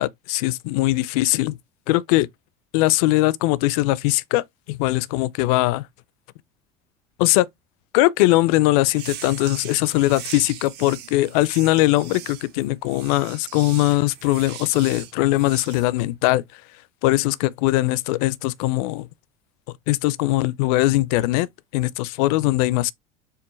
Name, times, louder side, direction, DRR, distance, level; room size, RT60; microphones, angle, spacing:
voice 1, 0.0-1.6 1.9-2.3 2.7-5.9 7.2-7.5 7.9-16.4 17.0-19.1 19.9-21.5 21.7-22.9, left 18 dB, 65° left, 0.4 m, -20 dB
sound 1, 8.9-15.8, right 11 dB, 55° right, 1.1 m, -39 dB
4.6 x 3.3 x 3.1 m
hypercardioid pair, 75°, 20 cm